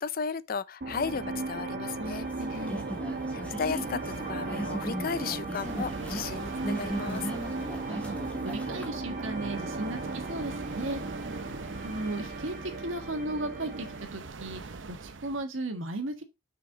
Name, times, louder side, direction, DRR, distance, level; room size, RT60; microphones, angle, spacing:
voice 1, 0.0-2.3 2.5-2.7 3.3-7.3, left 6 dB, 50° left, 0.5 m, -35 dB
sound 1, 0.8-14.1, right 3 dB, 50° right, 1.3 m, -36 dB
sound 2, 2.0-8.9, equal, 5° left, 1.2 m, -38 dB
voice 2, 2.0-2.9 7.8-8.1 8.4-11.0 11.8-16.2, right 2 dB, 85° right, 1.6 m, -36 dB
sound 3, 5.6-15.4, right 4 dB, 70° right, 0.8 m, -45 dB
6.4 x 5.7 x 3.9 m
head